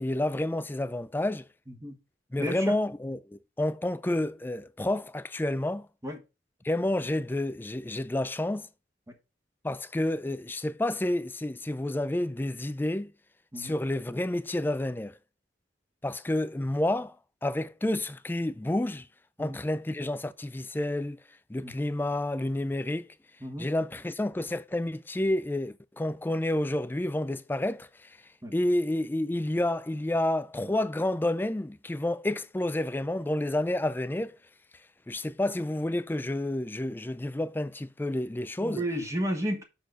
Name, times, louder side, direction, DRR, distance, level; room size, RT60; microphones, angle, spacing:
voice 1, 0.0-1.5 2.3-5.9 6.6-8.7 9.6-13.1 13.6-15.2 16.0-17.1 17.4-19.1 19.4-21.2 21.5-23.0 23.6-28.1 28.5-34.4 35.1-38.8, left 1 dB, 10° left, 0.3 m, -29 dB
voice 2, 2.4-2.7 6.0-6.2 13.5-13.7 19.4-19.6 21.6-21.7 23.4-23.7 28.4-28.5 38.6-39.6, equal, 15° right, 1.1 m, -32 dB
6.4 x 4.4 x 5.6 m
head